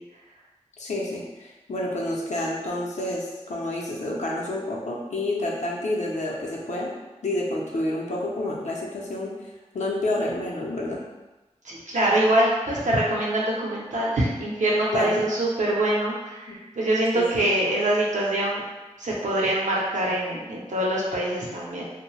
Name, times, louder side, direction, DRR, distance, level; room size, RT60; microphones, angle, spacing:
voice 1, 0.8-6.9 7.2-9.3 9.7-11.0 14.9-15.1 16.5-16.6 17.2-17.3, left 1 dB, 70° left, -3 dB, 0.6 m, -29 dB
voice 2, 11.6-18.6 19.0-21.8, right 1 dB, 80° right, -4 dB, 0.7 m, -24 dB
2.6 x 2.1 x 3.1 m, 1.1 s
wide cardioid pair, 70°, 12 cm